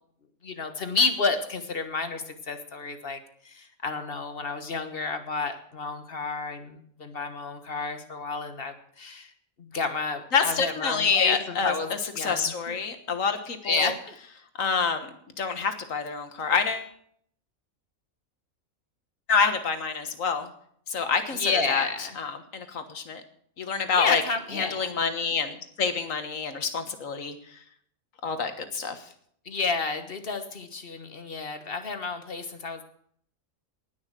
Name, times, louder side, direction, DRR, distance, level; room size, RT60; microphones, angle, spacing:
voice 1, 0.4-3.2 3.4-9.3 9.6-11.9 12.1-12.7 13.6-13.9 21.3-22.1 24.0-24.9 29.4-32.8, left 4 dB, 45° left, 8 dB, 1.5 m, -30 dB
voice 2, 10.3-13.9 14.6-16.9 19.3-20.5 20.9-23.2 23.6-24.2 24.5-27.6 28.2-29.1, left 5 dB, 65° left, 9 dB, 1.7 m, -27 dB
19.0 x 6.5 x 7.5 m, 0.65 s
omnidirectional pair, 1.5 m